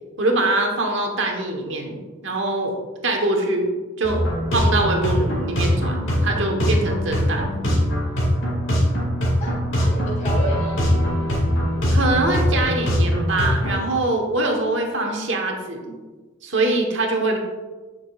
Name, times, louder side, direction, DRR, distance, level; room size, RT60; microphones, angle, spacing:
voice 1, 0.2-2.0 2.2-2.7 3.0-3.7 4.0-4.2 4.5-5.9 6.2-7.5 11.9-16.0 16.4-17.4, right 2 dB, 70° right, 2 dB, 1.2 m, -23 dB
sound 1, 4.0-13.8, equal, 75° left, 2.2 m, -22 dB
voice 2, 9.4-10.9, right 1 dB, 35° left, -2 dB, 1.8 m, -31 dB
9.1 x 6.0 x 2.4 m, 1.3 s
head